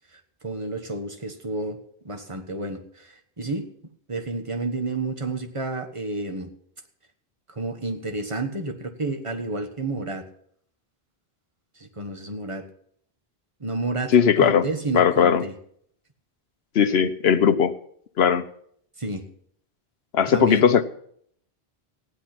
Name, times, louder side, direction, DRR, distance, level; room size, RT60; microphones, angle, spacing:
voice 1, 0.4-1.8 2.0-3.7 4.1-6.5 7.6-10.2 11.8-12.7 13.6-14.1 14.4-15.5 19.0-19.3 20.3-20.7, right 2 dB, 30° right, 6 dB, 1.4 m, -30 dB
voice 2, 14.1-14.7 14.9-15.4 16.7-17.7 18.2-18.4 20.1-20.8, left 7 dB, 75° left, 11 dB, 1.1 m, -18 dB
15.5 x 10.5 x 6.0 m, 0.65 s
omnidirectional pair, 1.0 m